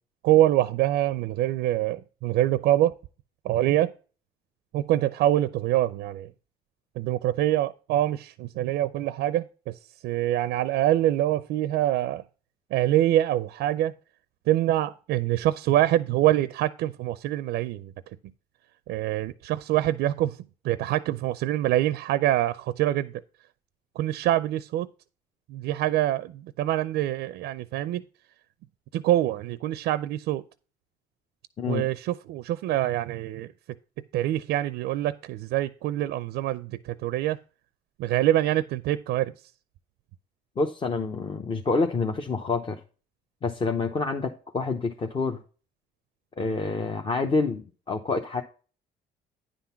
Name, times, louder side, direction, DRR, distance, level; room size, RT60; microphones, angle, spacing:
voice 1, 0.2-2.9 3.4-3.9 4.7-6.3 7.0-9.7 10.0-12.2 12.7-13.9 14.5-17.9 18.9-20.4 20.6-23.1 24.0-24.9 25.5-28.0 28.9-30.4 31.7-33.5 34.1-37.4 38.0-39.3, right 13 dB, 80° right, 0.5 m, -25 dB
voice 2, 40.6-42.8 43.4-45.4 46.4-48.4, left 3 dB, 30° left, 0.8 m, -27 dB
10.0 x 3.9 x 5.7 m
cardioid pair, 110°, 17 cm